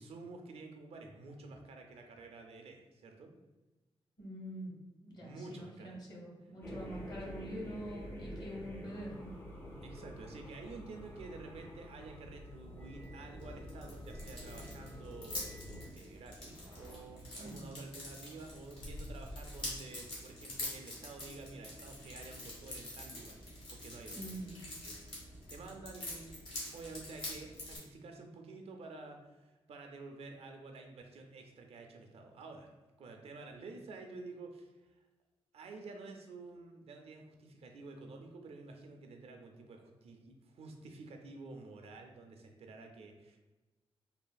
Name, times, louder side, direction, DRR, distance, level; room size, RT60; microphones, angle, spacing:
voice 1, 0.0-3.3 5.2-6.0 9.8-15.5 15.9-23.4 23.7-24.6 24.9-26.4 26.7-32.7 33.0-35.0 35.5-43.4, right 3 dB, 80° right, 3 dB, 0.4 m, -50 dB
voice 2, 4.2-4.7 5.0-9.3 17.4-17.6 24.1-24.6, right 1 dB, 45° left, -3 dB, 0.8 m, -45 dB
sound 1, 6.6-15.9, equal, 20° left, 0.4 m, -48 dB
sound 2, 12.7-27.8, left 1 dB, 60° left, 1.1 m, -46 dB
3.3 x 2.4 x 2.2 m, 1.1 s
wide cardioid pair, 170°, 10 cm